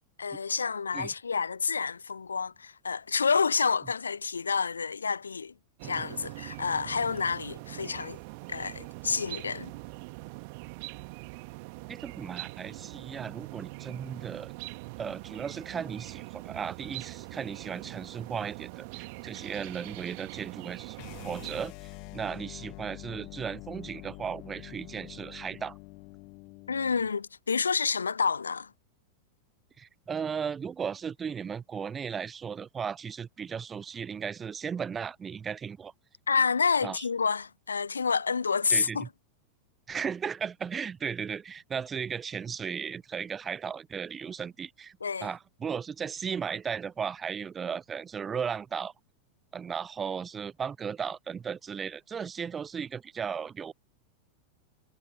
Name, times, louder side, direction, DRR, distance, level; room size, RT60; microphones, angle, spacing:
voice 1, 0.2-5.5 5.8-8.2 8.5-9.7 26.7-28.7 36.3-39.1 45.0-45.3, left 5 dB, 75° left, 0.7 m, -29 dB
sound 1, 5.8-21.7, right 29 dB, 45° right, 2.0 m, -43 dB
voice 2, 11.9-14.5 15.0-21.0 21.2-21.7 22.1-25.8 29.8-35.9 36.8-37.0 38.7-39.1 39.9-48.9 49.5-53.7, right 6 dB, 20° right, 0.4 m, -36 dB
sound 2, 20.9-27.1, left 28 dB, 45° left, 1.9 m, -46 dB
figure-of-eight pair, 90°, 0 cm